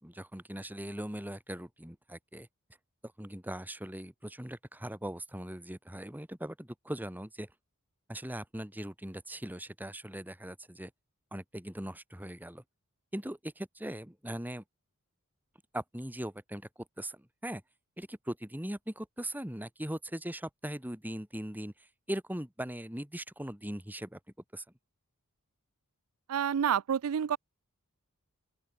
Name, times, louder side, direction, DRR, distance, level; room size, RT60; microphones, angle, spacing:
voice 1, 0.0-2.5 3.2-7.5 8.1-10.9 11.3-12.6 13.1-14.6 15.7-16.7 17.0-17.6 18.0-21.7 22.1-24.2 24.5-24.6, right 1 dB, 10° right, 2.6 m, -40 dB
voice 2, 26.3-27.4, right 8 dB, 70° right, 0.4 m, -28 dB
open air
head